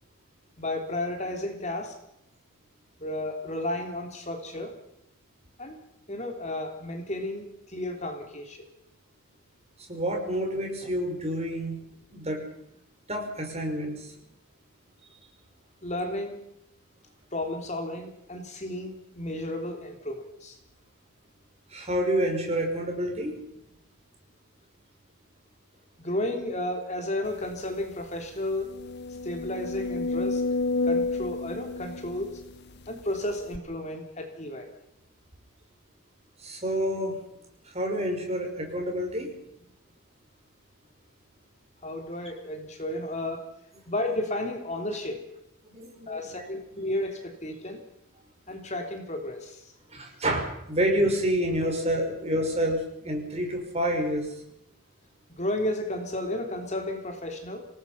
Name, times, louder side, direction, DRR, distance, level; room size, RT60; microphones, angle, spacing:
voice 1, 0.6-1.9 3.0-4.8 5.6-5.8 6.1-8.6 15.8-16.4 17.3-20.6 26.0-28.7 29.2-30.4 30.8-32.4 32.9-34.7 41.8-43.5 43.9-45.3 46.1-47.8 48.5-49.7 55.3-57.7, left 1 dB, 30° left, 4 dB, 3.3 m, -33 dB
voice 2, 9.9-11.8 12.1-12.4 13.1-14.1 21.7-23.4 36.4-37.2 37.7-39.3 45.6-46.4 49.9-54.3, equal, 30° right, 2 dB, 5.6 m, -28 dB
sound 1, 27.5-27.6 28.0-28.1 28.6-32.9 33.5-33.6, left 3 dB, 50° left, 1.0 m, -30 dB
27.5 x 18.5 x 5.7 m, 0.79 s
head